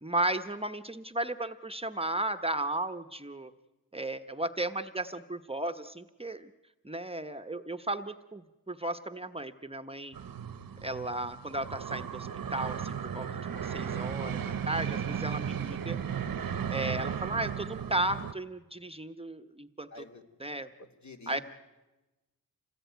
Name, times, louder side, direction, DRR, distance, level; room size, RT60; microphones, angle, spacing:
voice 1, 0.0-3.5 3.9-6.5 6.8-10.2 10.8-16.0 16.7-19.9 20.4-20.7 21.3-21.4, right 1 dB, 15° right, 7 dB, 1.0 m, -35 dB
sound 1, 10.1-18.3, right 8 dB, 80° right, 1.1 m, -35 dB
voice 2, 19.9-20.3 20.8-21.4, left 3 dB, 55° left, 3 dB, 2.9 m, -48 dB
26.5 x 19.0 x 9.3 m, 1.1 s
cardioid pair, 70°, 35 cm